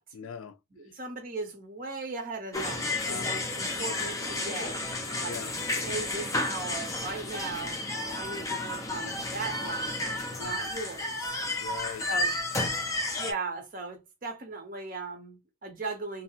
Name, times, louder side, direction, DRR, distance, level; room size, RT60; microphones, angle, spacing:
voice 1, 0.1-0.6 3.0-3.4 5.2-5.5 10.4-10.7 11.4-12.1, left 7 dB, 85° left, 0.4 m, -40 dB
voice 2, 0.7-5.4 5.8-7.8 8.2-10.0 10.4-11.3 12.1-12.3 13.2-16.2, right 3 dB, 40° right, 0.7 m, -38 dB
sound 1, 2.5-13.3, left 2 dB, 15° left, 0.4 m, -32 dB
2.6 x 2.0 x 2.7 m
head